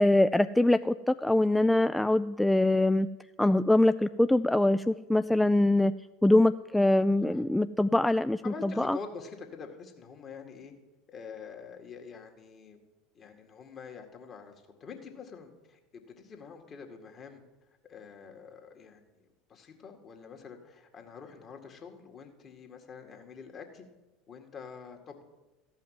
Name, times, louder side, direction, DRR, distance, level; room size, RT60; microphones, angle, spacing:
voice 1, 0.0-3.1 3.4-5.9 6.2-9.0, left 1 dB, 5° left, 11 dB, 0.3 m, -23 dB
voice 2, 8.4-10.7 11.1-12.8 13.1-14.5 14.8-17.4 17.8-19.0 19.5-23.8 24.3-25.2, left 5 dB, 40° left, 3 dB, 2.1 m, -46 dB
13.5 x 5.6 x 9.2 m, 1.1 s
hypercardioid pair, 75°, 0 cm